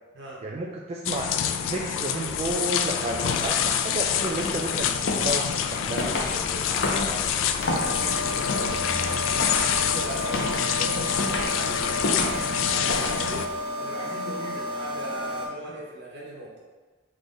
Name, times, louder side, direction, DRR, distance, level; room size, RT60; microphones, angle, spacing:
voice 1, 0.4-1.3 1.6-6.1, right 2 dB, 35° right, -2 dB, 0.3 m, -31 dB
sound 1, 1.1-13.5, left 8 dB, 90° left, 0.3 m, -27 dB
sound 2, 3.0-13.6, left 2 dB, 65° left, 0.7 m, -32 dB
voice 2, 6.3-9.5 9.7-13.5 13.8-16.6, right 1 dB, 65° right, -4 dB, 1.2 m, -39 dB
sound 3, 7.6-15.5, left 1 dB, 25° left, 0.9 m, -32 dB
3.8 x 3.4 x 3.8 m, 1.4 s
head